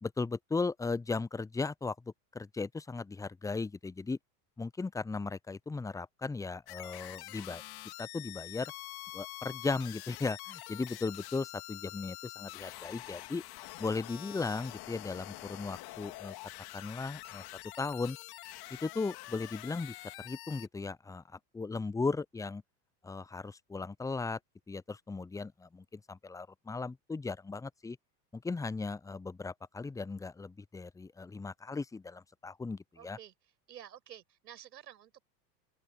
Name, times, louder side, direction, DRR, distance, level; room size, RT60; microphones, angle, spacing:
voice 1, 0.0-2.0 2.3-4.2 4.6-7.6 8.0-8.7 9.1-13.4 13.8-16.3 16.7-17.4 17.8-18.2 18.8-22.6 23.0-24.4 24.7-28.0 28.3-33.2, left 4 dB, 5° left, 0.7 m, -37 dB
sound 1, 6.7-20.7, left 19 dB, 45° left, 3.0 m, -46 dB
voice 2, 33.0-35.2, right 11 dB, 80° right, 6.0 m, -51 dB
hypercardioid pair, 85°, 49 cm